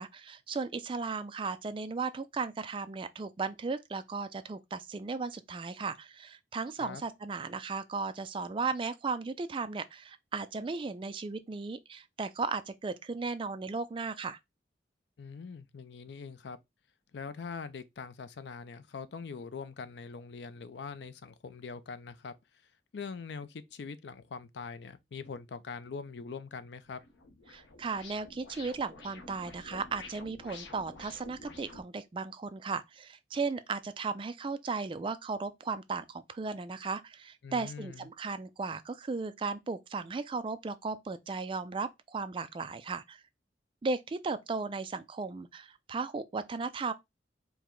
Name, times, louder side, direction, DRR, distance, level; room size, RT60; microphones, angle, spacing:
voice 1, 0.0-14.4 27.5-43.2 43.8-46.9, right 4 dB, 30° right, 0.3 m, -36 dB
voice 2, 15.2-16.6 17.1-22.3 22.9-27.0 37.4-38.1, left 5 dB, 70° left, 0.4 m, -43 dB
sound 1, 26.8-31.8, left 3 dB, 90° left, 0.8 m, -50 dB
4.7 x 2.1 x 3.7 m
head